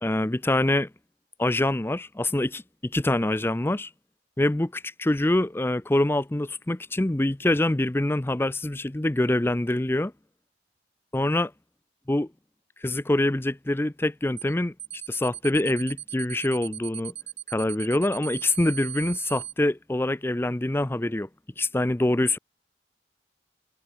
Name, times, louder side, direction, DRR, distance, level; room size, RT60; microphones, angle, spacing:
voice 1, 0.0-0.9 1.4-3.9 4.4-10.1 11.1-11.5 12.1-12.3 12.8-14.7 15.1-17.1 17.5-21.3 21.6-22.4, left 1 dB, 15° left, 0.5 m, -25 dB
sound 1, 14.4-14.5 14.8-19.5, right 11 dB, 35° right, 2.2 m, -37 dB
head